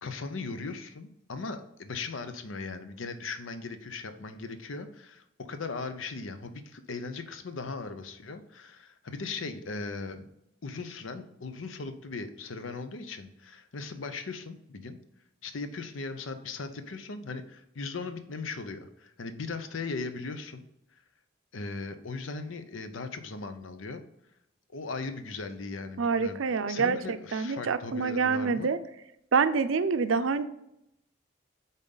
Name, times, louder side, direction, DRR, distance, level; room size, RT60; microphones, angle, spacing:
voice 1, 0.0-10.2 10.6-15.0 15.4-20.6 20.9-21.0 21.5-24.0 24.7-28.8, left 3 dB, 80° left, 9 dB, 0.7 m, -38 dB
voice 2, 26.0-28.8 29.3-30.4, right 5 dB, 80° right, 12 dB, 0.5 m, -26 dB
7.2 x 4.0 x 3.9 m, 0.83 s
head